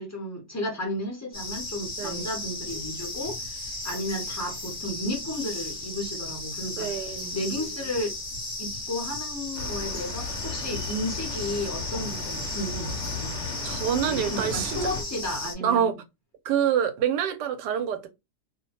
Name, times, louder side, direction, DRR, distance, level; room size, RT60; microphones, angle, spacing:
voice 1, 0.0-7.1 7.3-8.1 8.6-13.7 14.1-16.0, left 1 dB, 15° left, 0.5 m, -33 dB
sound 1, 1.3-15.5, left 2 dB, 35° left, 1.0 m, -35 dB
voice 2, 2.0-2.3 6.8-7.3 13.6-14.8 15.6-15.9 16.4-18.1, right 9 dB, 85° right, 1.2 m, -26 dB
sound 2, 9.5-15.0, left 4 dB, 60° left, 0.8 m, -36 dB
2.7 x 2.1 x 2.8 m
omnidirectional pair, 1.8 m